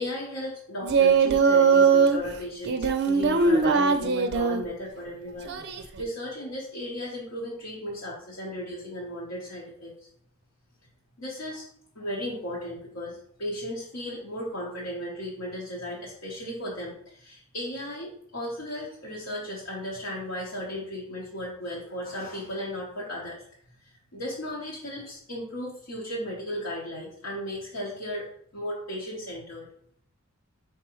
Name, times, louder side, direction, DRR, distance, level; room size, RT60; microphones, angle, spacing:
voice 1, 0.0-9.9 11.2-11.6 11.9-23.4 23.8-28.3 28.5-29.7, left 1 dB, 65° left, -6 dB, 1.0 m, -35 dB
Singing, 0.8-2.2 2.7-4.6 5.5-6.0, right 5 dB, 50° right, 0.4 m, -21 dB
4.6 x 3.6 x 3.0 m, 0.63 s
head